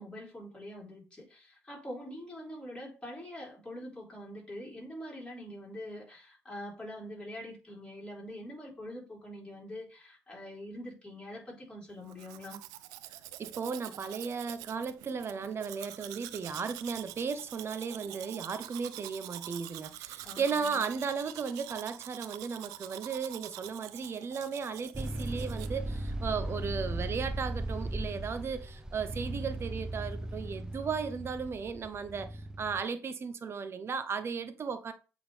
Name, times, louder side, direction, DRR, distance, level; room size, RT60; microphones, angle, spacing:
voice 1, 0.0-12.6 20.2-20.8, equal, 15° left, 3.7 m, -44 dB
Domestic sounds home sounds, 12.1-25.7, right 15 dB, 80° right, 0.4 m, -46 dB
voice 2, 13.4-34.9, right 5 dB, 45° right, 0.8 m, -35 dB
single cylinder moto engine, 24.9-32.8, right 1 dB, 10° right, 0.8 m, -37 dB
7.9 x 3.8 x 3.3 m
supercardioid pair, 65°, 6 cm